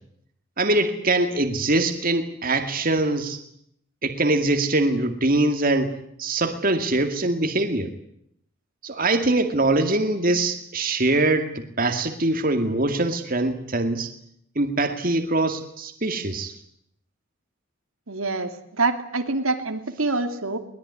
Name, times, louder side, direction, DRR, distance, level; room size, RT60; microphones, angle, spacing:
voice 1, 0.6-3.4 4.0-5.9 6.2-7.9 8.8-14.1 14.6-16.5, right 2 dB, 40° right, 6 dB, 2.3 m, -23 dB
voice 2, 18.1-20.6, right 3 dB, 80° right, 6 dB, 2.6 m, -26 dB
22.5 x 21.0 x 9.8 m, 0.71 s
head